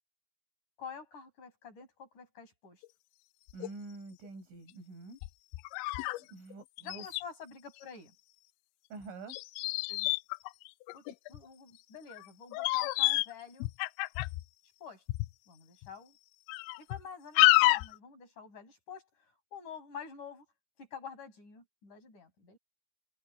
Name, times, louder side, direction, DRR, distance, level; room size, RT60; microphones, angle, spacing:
voice 1, 0.8-2.8 6.8-8.1 9.9-10.1 10.9-13.7 14.8-15.0 15.5-16.2 16.8-20.5 20.8-22.6, left 6 dB, 40° left, 8.8 m, -48 dB
sound 1, 2.8-2.9 3.5-3.7 4.2-4.3 5.2-6.2 6.5-6.6 6.8-7.2 9.3-11.4 12.1-12.3 12.5-13.3 13.6-14.4 15.1-15.3 15.8-15.9 16.5-17.0 17.4-17.9, left 22 dB, 85° left, 2.7 m, -28 dB
voice 2, 3.5-5.2 6.2-7.1 8.9-9.4, right 3 dB, 85° right, 9.5 m, -46 dB
omnidirectional pair, 5.5 m